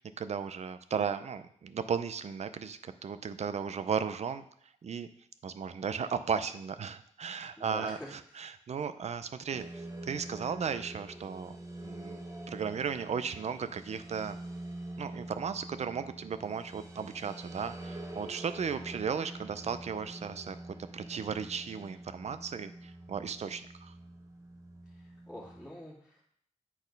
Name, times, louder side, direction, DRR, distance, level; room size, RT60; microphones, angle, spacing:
voice 1, 0.0-4.5 4.8-5.1 5.4-11.6 11.8-12.2 12.5-14.4 15.0-20.6 20.9-23.9, right 6 dB, 65° right, 11 dB, 0.5 m, -35 dB
voice 2, 7.6-8.5 18.7-18.8 24.9-26.3, left 1 dB, 5° left, -10 dB, 2.2 m, -46 dB
sound 1, 9.5-25.7, right 1 dB, 25° right, 1.3 m, -46 dB
8.4 x 4.2 x 5.3 m, 0.66 s
wide cardioid pair, 115°, 12 cm